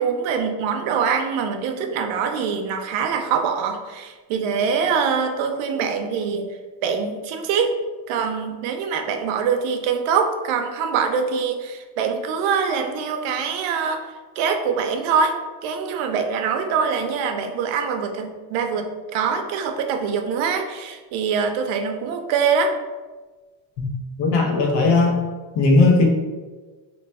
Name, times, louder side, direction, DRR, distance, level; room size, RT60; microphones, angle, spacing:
voice 1, 0.0-6.5 6.8-7.8 8.1-14.0 14.4-15.3 15.6-22.7, right 6 dB, 85° right, 5 dB, 0.6 m, -24 dB
voice 2, 24.2-25.1 25.6-26.1, left 3 dB, 60° left, 1 dB, 0.8 m, -17 dB
2.9 x 2.3 x 4.0 m, 1.3 s
cardioid pair, 125°, 45 cm